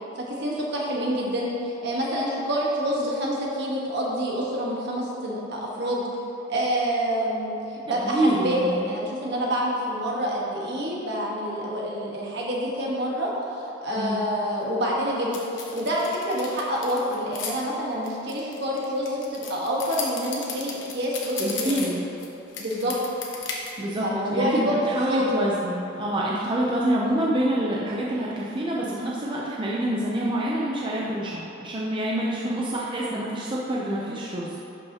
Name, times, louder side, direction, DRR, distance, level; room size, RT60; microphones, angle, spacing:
voice 1, 0.2-6.0 6.5-13.3 13.6-15.4 15.7-21.9 22.6-23.0 24.0-24.8 25.1-25.4 32.4-32.5, equal, 60° right, -3 dB, 1.4 m, -27 dB
voice 2, 8.0-8.9 13.9-14.2 21.4-22.1 23.8-24.0 24.3-34.6, right 1 dB, 25° right, -4 dB, 0.6 m, -26 dB
sound 1, 15.3-17.5 18.0-22.3 22.5-23.7, left 5 dB, 65° left, 1.0 m, -35 dB
11.5 x 5.5 x 2.9 m, 3.0 s
head